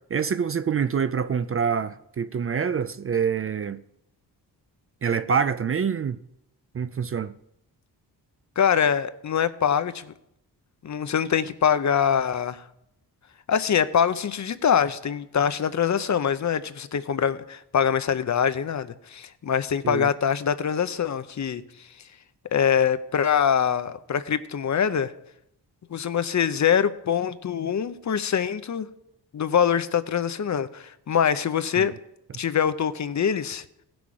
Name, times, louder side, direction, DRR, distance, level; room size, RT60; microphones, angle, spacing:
voice 1, 0.1-3.8 5.0-6.2 6.7-7.3 19.8-20.1 31.8-31.9, right 6 dB, 35° right, 0.4 m, -26 dB
voice 2, 8.6-10.1 10.8-12.6 13.5-21.6 22.5-25.1 25.9-28.9 29.3-31.9 32.3-33.6, left 8 dB, 45° left, 0.6 m, -24 dB
16.0 x 6.1 x 4.8 m
cardioid pair, 75°, 41 cm